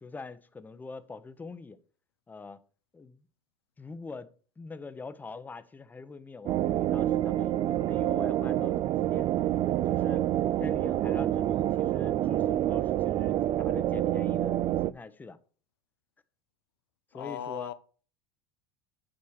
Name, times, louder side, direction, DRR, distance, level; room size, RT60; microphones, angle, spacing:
voice 1, 0.0-1.8 2.3-2.6 2.9-3.3 3.8-9.3 9.8-10.3 10.6-15.4 17.1-17.7, left 4 dB, 15° left, 0.8 m, -44 dB
sound 1, 6.5-14.9, right 13 dB, 40° right, 0.4 m, -27 dB
voice 2, 17.1-17.7, left 9 dB, 90° left, 0.7 m, -37 dB
8.6 x 4.6 x 6.4 m
supercardioid pair, 110°, 13 cm